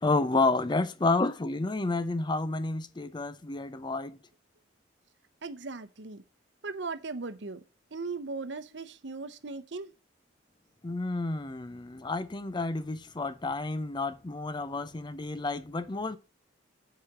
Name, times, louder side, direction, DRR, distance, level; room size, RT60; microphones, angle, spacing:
voice 1, 0.0-4.2 10.8-16.2, left 3 dB, 25° left, 0.5 m, -30 dB
voice 2, 5.4-6.2 6.6-7.6 7.9-9.9, right 3 dB, 65° right, 0.8 m, -38 dB
7.7 x 4.9 x 7.1 m
head